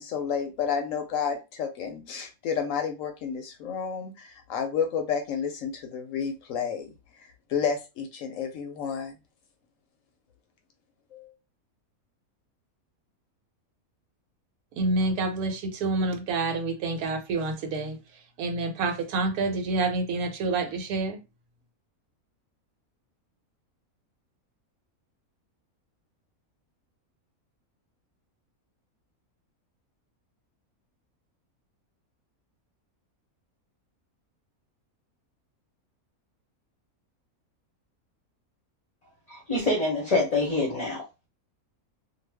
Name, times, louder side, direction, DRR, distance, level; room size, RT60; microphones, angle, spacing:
voice 1, 0.0-6.9 7.5-9.1 11.1-11.3, left 7 dB, 70° left, 0.9 m, -30 dB
voice 2, 14.7-18.0 18.4-21.2, right 3 dB, 85° right, 1.2 m, -28 dB
voice 3, 39.3-41.0, left 2 dB, 35° left, 0.7 m, -26 dB
2.4 x 2.2 x 3.3 m
omnidirectional pair, 1.5 m